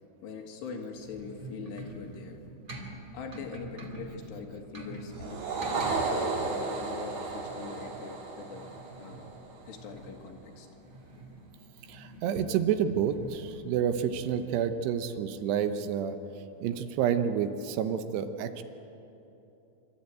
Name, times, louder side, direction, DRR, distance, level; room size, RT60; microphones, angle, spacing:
voice 1, 0.2-2.4 3.1-9.4 9.7-10.7 11.1-11.2, left 5 dB, 75° left, 3 dB, 3.8 m, -43 dB
sound 1, 0.9-14.5, right 1 dB, 30° right, 1.3 m, -46 dB
sound 2, 5.1-9.7, right 4 dB, 45° right, 4.8 m, -33 dB
voice 2, 11.9-16.2 16.6-18.6, right 8 dB, 80° right, 9 dB, 2.9 m, -29 dB
27.0 x 13.0 x 9.1 m, 3.0 s
omnidirectional pair, 5.0 m